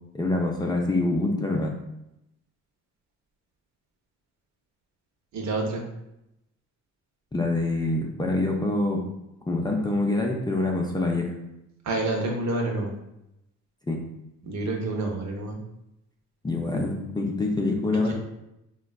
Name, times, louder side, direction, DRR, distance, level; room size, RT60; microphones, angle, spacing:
voice 1, 0.1-1.7 7.3-9.0 9.5-11.3 13.9-14.0 16.4-18.1, left 2 dB, 15° left, 0 dB, 0.4 m, -25 dB
voice 2, 5.3-5.8 11.8-12.9 14.4-15.6 18.1-18.2, right 2 dB, 65° right, 1 dB, 0.7 m, -28 dB
3.5 x 2.2 x 2.3 m, 0.86 s
cardioid pair, 90°, 30 cm